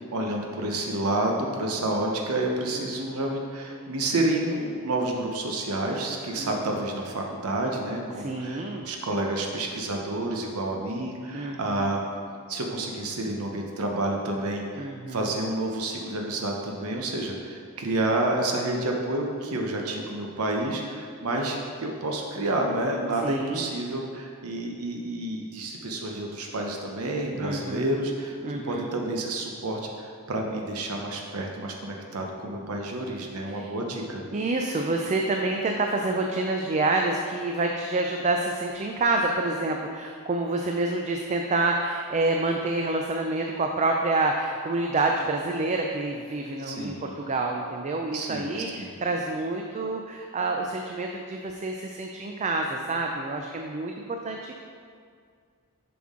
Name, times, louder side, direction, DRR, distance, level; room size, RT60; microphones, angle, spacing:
voice 1, 0.1-12.0 12.5-34.2 46.6-47.1 48.1-48.9, right 1 dB, 75° right, 1 dB, 0.8 m, -29 dB
voice 2, 2.7-3.2 6.4-6.6 8.2-8.9 11.3-11.8 14.8-15.3 23.2-23.7 27.4-27.9 28.4-28.9 33.6-33.7 34.3-54.5, right 2 dB, 30° right, 2 dB, 0.4 m, -28 dB
7.2 x 6.0 x 3.7 m, 2.1 s
head